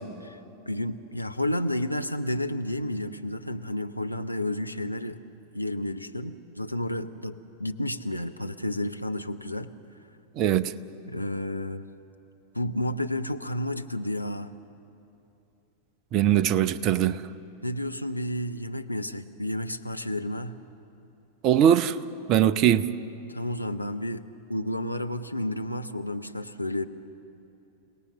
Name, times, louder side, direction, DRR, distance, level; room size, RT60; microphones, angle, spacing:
voice 1, 0.7-5.2 5.5-9.7 11.1-11.8 12.5-14.5 17.6-20.6 23.3-24.2 24.5-26.9, left 1 dB, 85° left, 0.7 m, -31 dB
voice 2, 10.4-10.7 16.1-17.2 21.4-22.0 22.3-22.9, right 10 dB, 40° right, 0.7 m, -21 dB
29.5 x 17.5 x 6.7 m
figure-of-eight pair, 90°, 0 cm